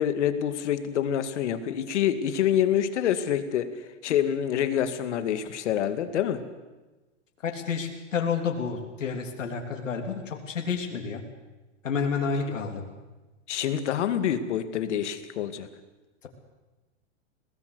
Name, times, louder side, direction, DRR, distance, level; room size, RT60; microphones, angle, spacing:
voice 1, 0.0-3.7 4.0-6.4 13.5-15.7, left 9 dB, 70° left, 10 dB, 2.3 m, -26 dB
voice 2, 7.4-11.2 11.8-12.8, left 5 dB, 90° left, 3 dB, 3.4 m, -30 dB
22.0 x 18.5 x 8.1 m, 1.2 s
hypercardioid pair, 135°, 37 cm